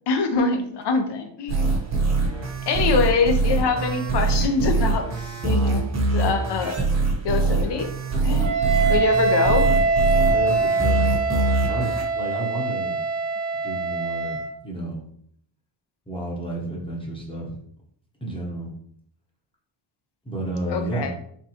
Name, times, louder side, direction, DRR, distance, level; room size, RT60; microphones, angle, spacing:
voice 1, 0.1-1.6 2.7-6.8 7.2-7.9 8.2-9.7 20.7-21.1, left 4 dB, 55° left, 6 dB, 0.8 m, -24 dB
sound 1, 1.5-12.0, right 3 dB, 30° right, 1.0 m, -23 dB
Wind instrument woodwind instrument, 8.4-14.5, right 4 dB, 80° right, 0.8 m, -23 dB
voice 2, 10.3-11.1 11.6-13.0 13.6-15.0 16.1-17.6 18.2-18.7 20.2-21.1, right 1 dB, 10° left, -3 dB, 0.9 m, -31 dB
4.5 x 3.7 x 2.9 m, 0.65 s
wide cardioid pair, 165°, 49 cm